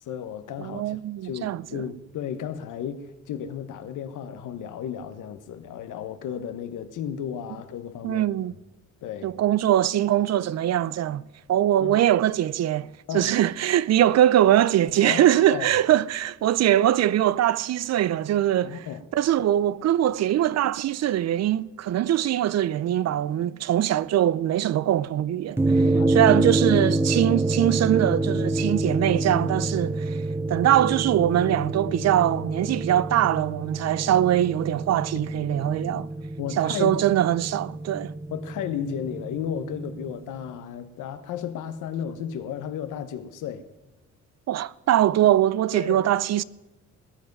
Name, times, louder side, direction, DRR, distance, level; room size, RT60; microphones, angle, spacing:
voice 1, 0.0-8.3 9.0-9.3 11.8-12.0 13.1-13.3 15.0-15.7 18.6-19.0 25.7-26.5 29.6-29.7 34.0-34.1 35.1-35.2 35.7-36.1 36.4-37.0 38.3-43.6 45.7-46.1, left 8 dB, 85° left, 1.2 m, -34 dB
voice 2, 0.6-1.8 8.0-8.5 9.2-11.2 11.5-18.9 19.1-30.2 30.5-36.1 36.6-38.1 44.5-46.4, right 12 dB, 60° right, 0.5 m, -22 dB
sound 1, 25.6-40.1, right 2 dB, 10° right, 0.4 m, -27 dB
19.0 x 9.6 x 5.4 m
cardioid pair, 90°, 30 cm